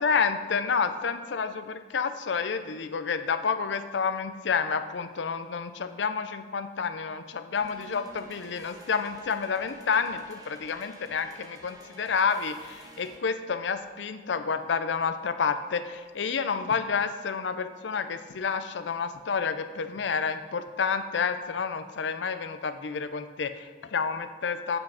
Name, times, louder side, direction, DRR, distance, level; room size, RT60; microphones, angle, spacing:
voice 1, 0.0-24.8, left 5 dB, 75° left, 10 dB, 0.5 m, -29 dB
sound 1, 7.5-13.2, right 1 dB, 20° right, 0.9 m, -50 dB
8.0 x 6.1 x 4.9 m, 1.5 s
head